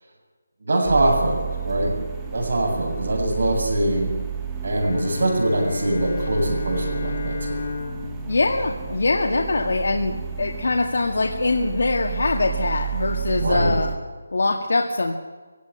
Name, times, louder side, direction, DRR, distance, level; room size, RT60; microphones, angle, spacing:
voice 1, 0.6-1.9 2.3-4.1 4.6-7.6 9.3-9.4 13.4-13.8, right 1 dB, 50° right, 1 dB, 7.2 m, -23 dB
sound 1, 0.8-13.9, right 8 dB, 5° right, 1.5 m, -31 dB
Bowed string instrument, 4.8-9.7, left 4 dB, 40° left, 3.4 m, -33 dB
voice 2, 8.3-13.9 14.3-15.1, left 3 dB, 60° left, 2 dB, 2.0 m, -23 dB
21.5 x 17.0 x 9.9 m, 1.4 s
figure-of-eight pair, 175°, 0 cm